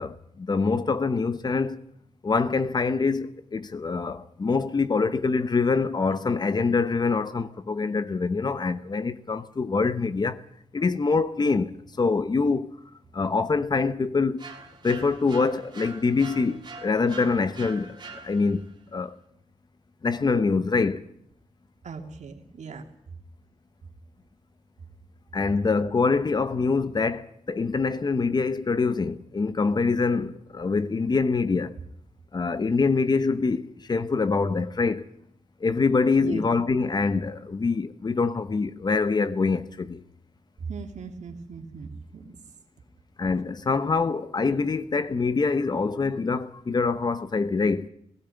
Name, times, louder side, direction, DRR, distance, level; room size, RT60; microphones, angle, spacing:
voice 1, 0.0-1.8 2.2-10.4 10.7-12.7 13.1-14.4 14.8-17.9 18.2-18.6 18.9-19.1 20.0-21.0 25.3-31.7 32.3-35.0 35.6-40.0 43.2-47.9, left 4 dB, 35° left, 0.9 m, -25 dB
sound 1, 14.4-18.7, right 3 dB, 40° right, 3.2 m, -43 dB
voice 2, 21.8-22.8 36.1-36.4 40.6-42.4, right 5 dB, 80° right, 2.8 m, -38 dB
17.5 x 17.5 x 9.2 m
wide cardioid pair, 170°, 12 cm